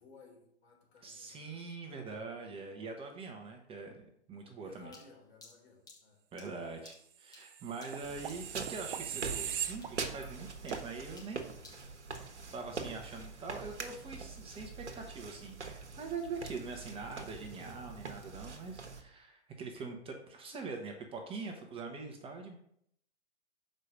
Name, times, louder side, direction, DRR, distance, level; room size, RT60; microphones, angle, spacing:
voice 1, 0.0-1.5 3.4-3.7 4.6-6.8, left 4 dB, 65° left, 1 dB, 3.4 m, -59 dB
voice 2, 1.0-4.9 6.3-11.5 12.5-22.6, right 4 dB, 15° right, 3 dB, 1.1 m, -43 dB
sound 1, 4.9-9.0 9.2-9.6 9.8-12.4, left 3 dB, 10° left, 1.9 m, -58 dB
sound 2, 7.4-10.3 10.7-10.9, right 10 dB, 50° right, 0.8 m, -40 dB
sound 3, 8.0-19.0, right 4 dB, 80° right, 1.3 m, -44 dB
6.6 x 4.9 x 6.6 m, 0.70 s
hypercardioid pair, 125°, 34 cm